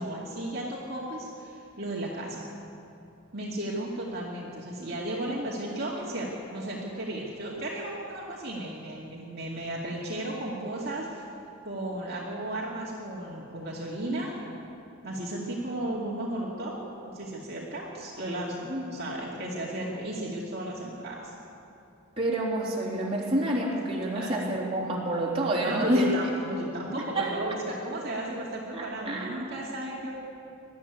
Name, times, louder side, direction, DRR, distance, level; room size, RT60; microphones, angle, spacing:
voice 1, 0.0-2.5 3.3-11.2 11.6-14.3 15.0-16.7 17.1-21.3 24.1-24.3 25.6-30.1, right 1 dB, 45° right, -5 dB, 2.5 m, -34 dB
voice 2, 22.2-26.1 27.2-27.3 28.7-29.6, right 1 dB, 25° right, -4 dB, 3.6 m, -28 dB
21.5 x 13.0 x 9.5 m, 2.7 s
head